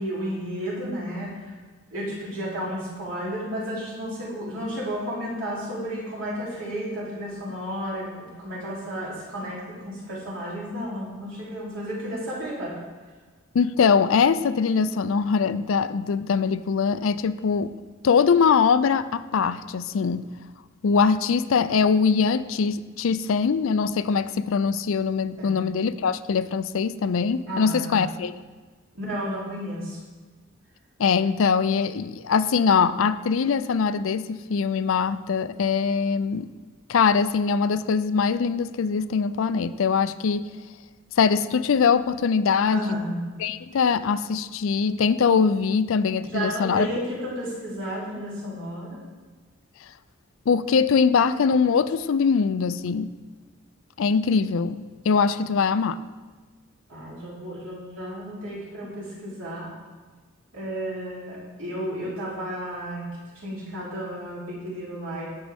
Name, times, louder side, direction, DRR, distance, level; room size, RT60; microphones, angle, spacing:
voice 1, 0.0-1.5 1.9-12.7 25.4-25.6 27.5-28.0 28.9-30.0 42.7-43.3 46.3-49.0 56.9-59.7 60.5-63.1 63.4-65.3, equal, 65° right, -6 dB, 3.2 m, -32 dB
voice 2, 13.5-17.7 18.0-20.2 20.8-28.3 31.0-36.5 36.9-40.5 41.2-42.8 43.4-46.9 50.5-53.1 54.0-56.0, left 5 dB, 70° left, 14 dB, 0.4 m, -22 dB
15.0 x 6.3 x 3.5 m, 1.4 s
head